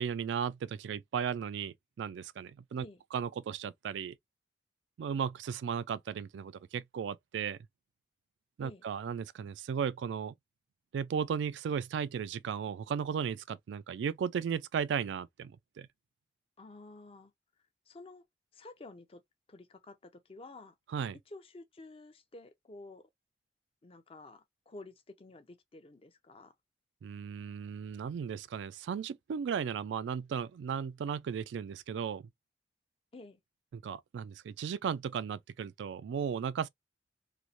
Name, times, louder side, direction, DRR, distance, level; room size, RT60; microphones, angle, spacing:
voice 1, 0.0-2.9 3.1-4.2 5.0-7.6 8.6-10.3 10.9-15.9 20.9-21.2 27.0-32.3 33.7-36.7, right 7 dB, 90° right, 0.3 m, -35 dB
voice 2, 16.6-17.3 17.9-18.2 18.5-19.2 19.5-20.7 21.3-23.1 23.8-26.5 33.1-33.4, left 2 dB, 30° left, 0.5 m, -51 dB
3.1 x 2.1 x 2.5 m
head